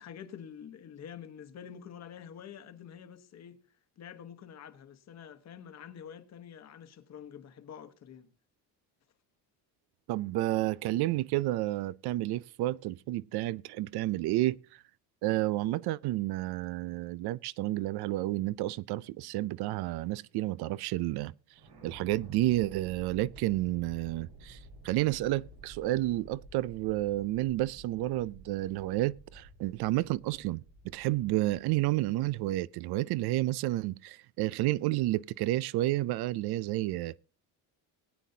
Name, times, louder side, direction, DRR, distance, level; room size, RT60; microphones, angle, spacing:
voice 1, 0.0-3.6 4.0-8.3, left 8 dB, 40° left, 1.1 m, -47 dB
voice 2, 10.1-14.8 15.2-21.3 21.8-37.2, right 16 dB, 70° right, 0.5 m, -31 dB
sound 1, 21.5-32.6, right 1 dB, 85° right, 4.1 m, -52 dB
20.0 x 9.3 x 2.7 m
cardioid pair, 170°, 40 cm